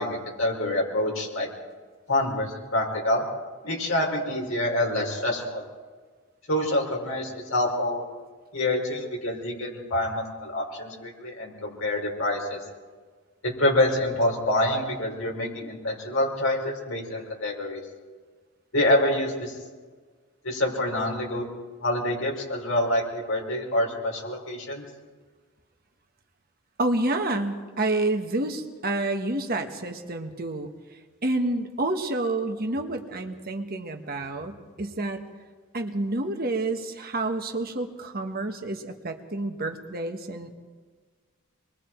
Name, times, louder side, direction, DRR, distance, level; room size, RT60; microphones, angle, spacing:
voice 1, 0.0-1.5 2.1-3.2 3.6-5.6 6.5-8.0 8.5-12.6 13.4-17.8 18.7-19.5 20.4-21.4 21.8-24.8, left 1 dB, 70° left, -1 dB, 5.1 m, -26 dB
voice 2, 26.8-30.7 31.2-35.2 35.7-40.5, right 2 dB, 45° right, 4 dB, 1.6 m, -29 dB
26.0 x 21.5 x 4.7 m, 1.4 s
head